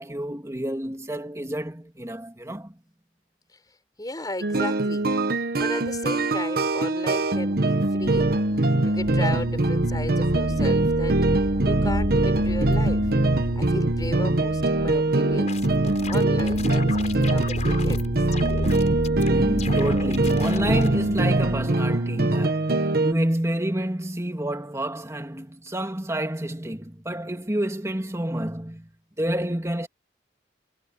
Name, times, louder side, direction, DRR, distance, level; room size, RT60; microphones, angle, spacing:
voice 1, 0.0-2.7 19.2-28.9 29.2-29.9, right 1 dB, 15° right, 2.4 m, -29 dB
voice 2, 4.0-13.1 13.5-15.6 16.1-18.1, left 1 dB, 20° left, 5.0 m, -35 dB
sound 1, 4.4-23.1, right 2 dB, 55° right, 1.2 m, -23 dB
sound 2, 8.0-22.0, equal, 85° left, 4.6 m, -32 dB
sound 3, 15.2-18.1 18.3-19.3 19.6-20.9, left 3 dB, 40° left, 5.6 m, -36 dB
head